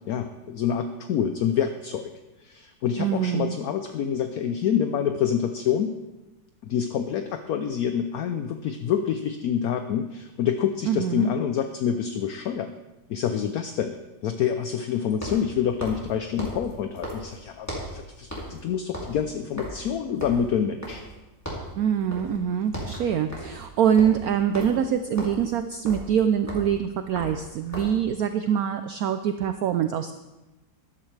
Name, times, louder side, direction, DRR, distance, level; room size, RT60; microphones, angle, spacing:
voice 1, 0.1-2.1 2.4-5.9 6.6-12.7 13.1-14.0 14.2-21.0, left 8 dB, 70° left, 8 dB, 0.8 m, -27 dB
voice 2, 3.0-3.5 10.9-11.3 21.8-30.1, right 8 dB, 80° right, 9 dB, 0.8 m, -24 dB
sound 1, 15.1-18.0 18.3-18.6 18.9-21.2 21.4-21.8 22.1-22.4 22.6-28.0, equal, 10° left, 2.5 m, -37 dB
13.5 x 11.5 x 3.3 m, 1.0 s
omnidirectional pair, 2.1 m